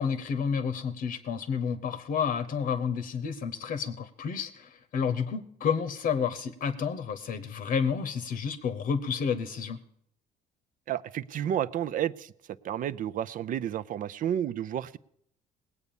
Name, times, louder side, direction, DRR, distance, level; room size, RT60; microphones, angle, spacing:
voice 1, 0.0-9.8, left 6 dB, 60° left, 11 dB, 0.9 m, -30 dB
voice 2, 10.9-12.3 12.6-15.0, right 10 dB, 55° right, 15 dB, 0.5 m, -31 dB
19.0 x 8.3 x 7.0 m, 0.72 s
cardioid pair, 110°, 17 cm